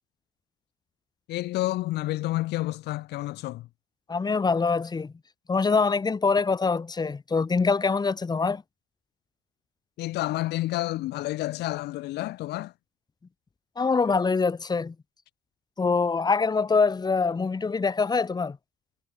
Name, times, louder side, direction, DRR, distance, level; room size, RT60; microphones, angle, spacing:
voice 1, 1.3-3.7 10.0-12.7, left 17 dB, 80° left, 2.0 m, -29 dB
voice 2, 4.1-5.1 5.5-8.6 13.8-14.9 15.8-18.6, left 4 dB, 25° left, 2.8 m, -24 dB
cardioid pair, 110°, 17 cm